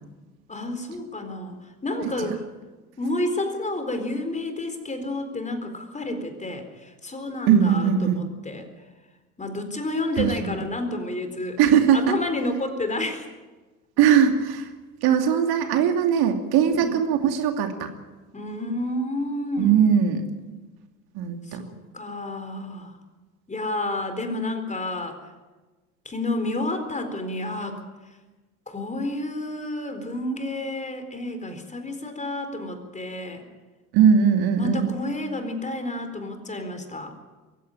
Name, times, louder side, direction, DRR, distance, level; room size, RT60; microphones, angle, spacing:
voice 1, 0.5-2.4 3.0-8.7 9.4-11.6 11.9-13.3 16.8-16.9 18.3-19.8 21.4-22.9 23.5-25.3 26.0-27.8 28.7-33.4 34.6-37.1, left 1 dB, 15° left, 7 dB, 4.2 m, -30 dB
voice 2, 7.5-8.2 10.2-10.6 11.6-12.2 14.0-14.7 15.0-17.9 19.6-20.3 21.1-21.6 33.9-34.9, right 8 dB, 55° right, 5 dB, 2.7 m, -20 dB
23.0 x 16.0 x 8.9 m, 1.2 s
hypercardioid pair, 75°, 45 cm